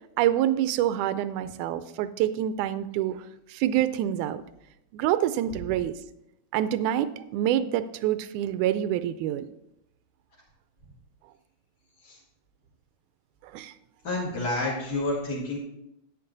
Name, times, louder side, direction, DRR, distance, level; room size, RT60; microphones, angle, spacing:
voice 1, 0.2-4.4 4.9-5.9 6.5-9.5 13.4-13.7, right 11 dB, 80° right, 13 dB, 1.9 m, -26 dB
voice 2, 14.0-15.6, left 2 dB, 35° left, -6 dB, 1.9 m, -29 dB
11.0 x 8.4 x 3.9 m, 0.85 s
omnidirectional pair, 3.7 m